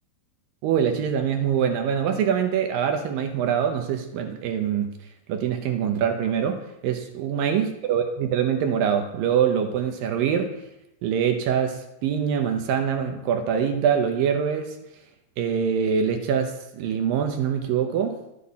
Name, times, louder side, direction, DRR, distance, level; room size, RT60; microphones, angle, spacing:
voice 1, 0.6-4.9 5.3-10.5 11.0-14.8 15.4-18.2, right 8 dB, 75° right, 5 dB, 2.2 m, -24 dB
12.5 x 8.6 x 4.2 m, 0.88 s
omnidirectional pair, 4.9 m